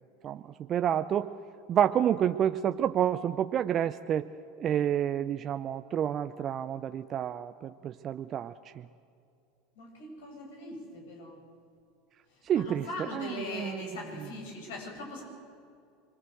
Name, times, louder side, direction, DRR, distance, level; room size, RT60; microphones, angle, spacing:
voice 1, 0.2-1.3 1.7-4.3 4.6-8.9 12.4-13.9 14.2-14.3, right 10 dB, 40° right, 9 dB, 0.7 m, -29 dB
voice 2, 9.8-11.4 12.5-15.2, left 1 dB, 75° left, 1 dB, 7.7 m, -40 dB
25.5 x 23.0 x 8.0 m, 2.4 s
hypercardioid pair, 85°, 0 cm